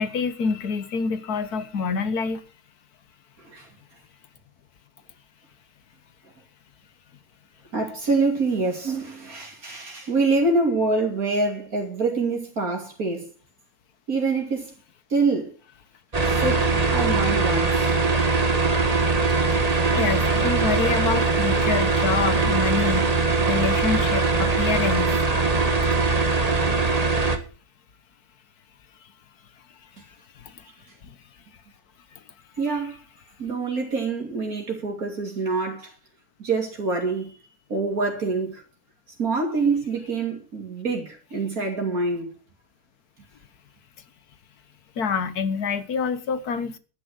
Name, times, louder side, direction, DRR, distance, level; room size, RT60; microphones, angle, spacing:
voice 1, 0.0-2.4 20.0-25.2 30.4-30.7 31.0-31.2 45.0-46.8, left 5 dB, 75° left, 1.8 m, -27 dB
voice 2, 3.4-3.7 7.7-13.3 14.1-14.7 15.1-15.5 16.2-18.0 32.6-33.0 33.4-35.9 36.4-37.3 37.7-38.6 39.2-42.3, right 3 dB, 65° right, 3.2 m, -25 dB
sound 1, 16.1-27.4, right 3 dB, 25° right, 1.6 m, -21 dB
11.5 x 10.5 x 6.4 m
omnidirectional pair, 1.6 m